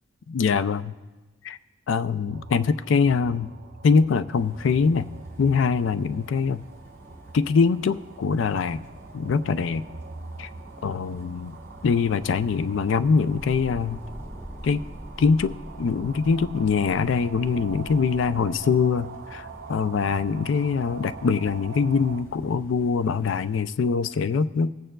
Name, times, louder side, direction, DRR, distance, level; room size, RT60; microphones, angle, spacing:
voice 1, 0.3-0.9 1.4-1.6 1.9-3.5 3.8-5.1 5.4-6.6 7.3-8.8 9.1-9.8 10.4-10.5 10.8-11.6 11.8-14.0 14.6-14.8 15.2-24.7, left 5 dB, 70° left, 13 dB, 0.3 m, -23 dB
sound 1, 2.3-22.2, right 4 dB, 55° right, 0.5 m, -44 dB
sound 2, 4.3-23.6, equal, 10° left, 1.0 m, -46 dB
19.5 x 8.7 x 2.3 m, 1.2 s
head